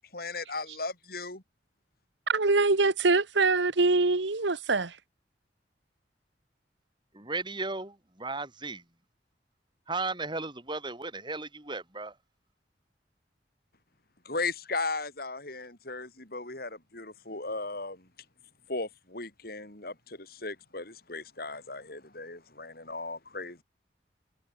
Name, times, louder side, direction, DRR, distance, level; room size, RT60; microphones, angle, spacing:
voice 1, 0.1-1.4 14.3-18.1 18.7-23.6, left 3 dB, 55° left, 7.1 m, -36 dB
voice 2, 2.3-5.0, right 3 dB, 90° right, 1.3 m, -24 dB
voice 3, 7.1-8.8 9.9-12.1, right 3 dB, 25° right, 5.3 m, -35 dB
head